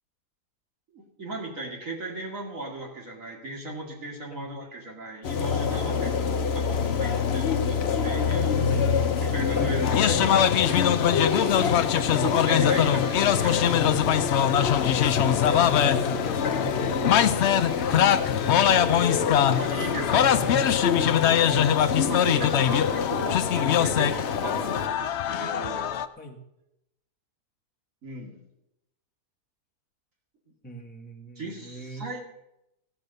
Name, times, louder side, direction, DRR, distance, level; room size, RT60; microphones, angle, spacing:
voice 1, 0.9-8.6 9.2-10.9 12.2-13.6 19.5-20.3 22.0-25.9 28.0-28.4 31.4-32.2, right 2 dB, 50° right, -1 dB, 2.7 m, -37 dB
sound 1, 5.2-24.9, left 6 dB, 50° left, 0.9 m, -27 dB
sound 2, 9.8-26.1, left 10 dB, 70° left, 0.6 m, -23 dB
voice 2, 11.4-12.2 12.6-21.1 26.2-26.4 30.6-32.1, equal, 5° left, 0 dB, 1.4 m, -39 dB
16.0 x 6.8 x 6.6 m, 0.88 s
omnidirectional pair, 1.7 m